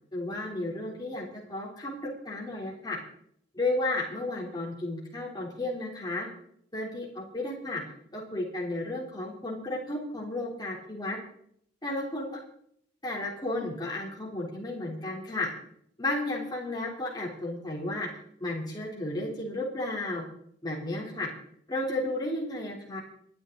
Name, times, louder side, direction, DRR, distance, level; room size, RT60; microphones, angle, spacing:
voice 1, 0.1-3.0 3.5-6.3 6.7-7.8 8.1-11.2 11.8-12.4 13.0-15.5 16.0-18.1 18.4-20.2 20.6-21.3 21.7-23.0, left 2 dB, 20° left, -2 dB, 3.7 m, -33 dB
27.5 x 9.8 x 4.0 m, 0.69 s
head